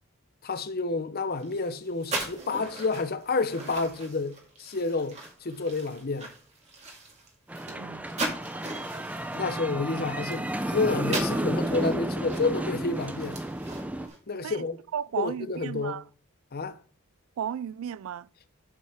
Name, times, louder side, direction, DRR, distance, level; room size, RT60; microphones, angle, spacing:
voice 1, 0.4-6.3 9.3-13.4 14.3-14.8 15.2-16.0 16.5-16.8, left 3 dB, 45° left, 0.8 m, -29 dB
sound 1, 1.3-10.7 11.0-14.2, right 2 dB, 30° right, 2.2 m, -39 dB
sound 2, 7.5-14.1, right 1 dB, 5° right, 0.5 m, -32 dB
voice 2, 7.7-8.0 14.4-14.6 14.9-16.0 17.4-18.3, right 9 dB, 70° right, 0.3 m, -34 dB
7.5 x 7.2 x 3.5 m
head